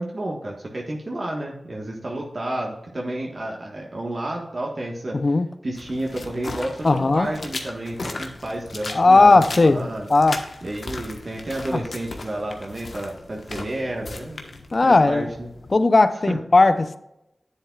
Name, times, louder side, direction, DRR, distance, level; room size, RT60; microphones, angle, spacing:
voice 1, 0.0-5.2 5.6-10.1 10.6-15.5 16.3-16.4, right 1 dB, 50° right, 1.4 m, -31 dB
voice 2, 5.1-5.5 6.8-7.3 8.9-10.4 11.7-11.8 14.7-15.3 15.7-17.0, left 3 dB, 50° left, 0.6 m, -17 dB
sound 1, 5.7-15.7, left 3 dB, 70° left, 1.2 m, -37 dB
9.7 x 7.7 x 2.4 m
cardioid pair, 55°, 0 cm